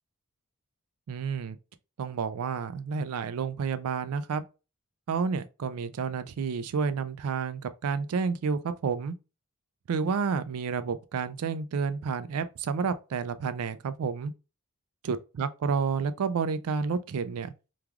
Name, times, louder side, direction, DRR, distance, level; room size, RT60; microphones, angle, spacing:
voice 1, 1.1-1.6 2.0-4.4 5.1-9.1 9.9-14.3 15.0-17.5, right 5 dB, 80° right, 0.4 m, -30 dB
3.2 x 2.3 x 2.3 m
head